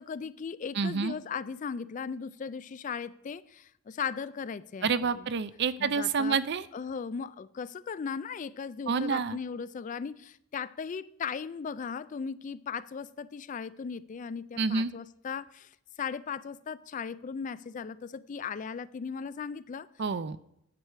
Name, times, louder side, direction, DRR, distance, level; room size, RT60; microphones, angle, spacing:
voice 1, 0.0-5.2 5.8-6.4 6.7-15.7 16.0-19.9, left 6 dB, 40° left, 0.3 m, -37 dB
voice 2, 0.7-1.2 4.8-6.7 8.9-9.4 14.6-14.9 20.0-20.4, right 5 dB, 55° right, 0.5 m, -28 dB
9.6 x 4.8 x 6.7 m
head